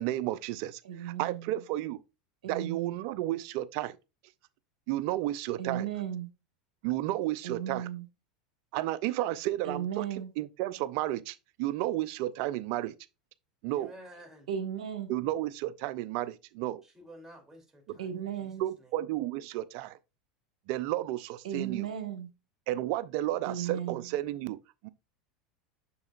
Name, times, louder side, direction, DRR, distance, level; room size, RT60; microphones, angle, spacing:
voice 1, 0.0-2.0 2.5-4.0 4.9-5.9 6.8-7.9 8.7-10.0 10.4-12.9 13.6-13.9 15.1-16.8 18.6-20.0 20.7-21.9 22.7-24.6 24.8-24.9, right 15 dB, 60° right, 0.6 m, -32 dB
voice 2, 0.8-1.5 2.4-3.0 5.6-6.3 7.4-8.0 9.6-10.3 14.5-15.1 18.0-18.7 21.4-22.3 23.4-24.1, right 9 dB, 75° right, 1.6 m, -35 dB
voice 3, 13.6-14.5 16.8-19.0, right 1 dB, 10° right, 3.0 m, -52 dB
6.9 x 6.7 x 2.5 m
hypercardioid pair, 90°, 4 cm